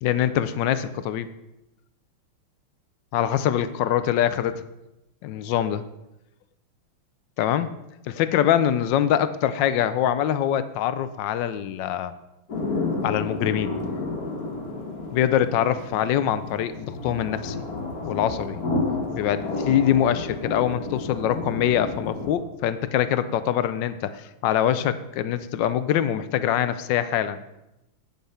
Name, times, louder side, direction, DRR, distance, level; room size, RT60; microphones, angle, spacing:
voice 1, 0.0-1.3 3.1-4.6 5.2-5.8 7.4-7.7 8.1-12.1 13.0-13.8 15.1-17.6 18.0-18.6 19.1-27.4, left 10 dB, 70° left, 13 dB, 1.2 m, -24 dB
sound 1, 12.5-22.3, left 3 dB, 50° left, 1.8 m, -31 dB
8.7 x 7.2 x 5.6 m, 0.91 s
omnidirectional pair, 2.3 m